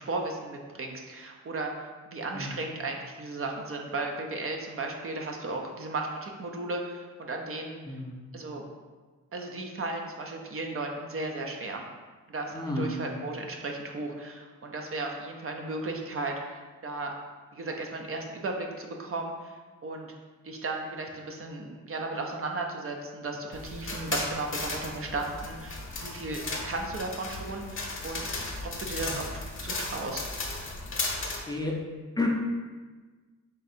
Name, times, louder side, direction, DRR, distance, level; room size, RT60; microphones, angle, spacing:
voice 1, 0.0-1.7 2.1-8.0 8.3-8.6 9.3-11.8 12.3-17.1 17.5-20.1 20.4-28.3 28.8-30.3, right 2 dB, 45° right, 2 dB, 0.5 m, -35 dB
voice 2, 7.8-8.2 12.5-13.0 29.0-29.2 31.5-31.8 32.2-32.3, left 2 dB, 15° left, -1 dB, 0.5 m, -32 dB
sound 1, 23.5-31.4, left 3 dB, 40° left, 0.8 m, -35 dB
3.7 x 2.6 x 4.2 m, 1.4 s
wide cardioid pair, 105°, 32 cm